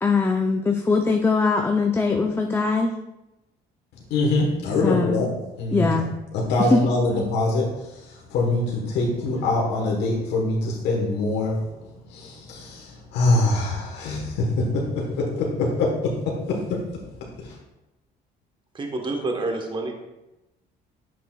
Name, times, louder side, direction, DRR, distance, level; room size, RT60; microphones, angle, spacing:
voice 1, 0.0-2.9 4.8-5.2 5.7-6.1 6.7-6.8, left 4 dB, 15° left, 3 dB, 0.4 m, -21 dB
voice 2, 4.1-5.9 6.3-15.9 16.3-16.4 16.7-16.8 17.4-17.6, left 2 dB, 85° left, -2 dB, 1.2 m, -24 dB
voice 3, 18.8-20.0, right 2 dB, 30° right, 2 dB, 1.1 m, -28 dB
8.3 x 6.0 x 2.3 m, 0.97 s
cardioid pair, 110°, 17 cm